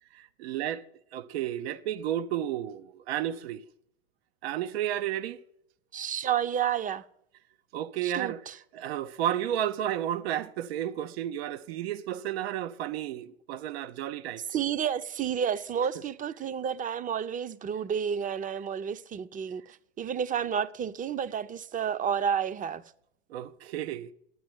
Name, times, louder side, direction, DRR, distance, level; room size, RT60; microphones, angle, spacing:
voice 1, 0.1-0.8 1.1-3.6 4.4-5.4 7.7-8.4 8.7-14.4 23.3-24.1, right 11 dB, 75° right, 0.9 m, -32 dB
voice 2, 5.9-7.0 8.0-8.5 14.5-19.6 20.0-22.8, right 8 dB, 25° right, 0.7 m, -30 dB
11.0 x 8.9 x 7.9 m
hypercardioid pair, 100°, 32 cm